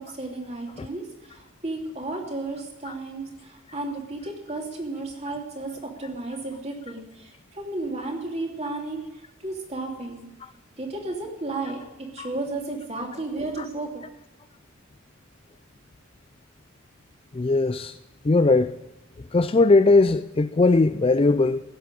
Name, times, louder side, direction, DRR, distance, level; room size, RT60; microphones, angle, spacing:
voice 1, 0.0-9.0 9.4-10.3 10.8-14.0, right 2 dB, 30° right, 3.0 m, -33 dB
voice 2, 17.3-18.0 18.2-18.8 19.3-21.6, left 3 dB, 25° left, 0.4 m, -19 dB
16.0 x 7.7 x 9.2 m
head